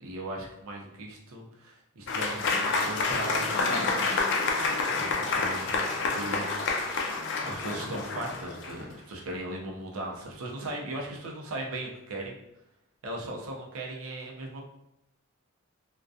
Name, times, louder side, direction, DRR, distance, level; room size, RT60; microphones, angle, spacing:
voice 1, 0.0-4.1 4.9-6.8 7.5-12.3 13.0-14.7, right 1 dB, 85° right, -1 dB, 0.6 m, -38 dB
Applause / Crowd, 2.1-8.9, left 3 dB, 60° left, 0.4 m, -28 dB
2.3 x 2.2 x 2.6 m, 0.83 s
head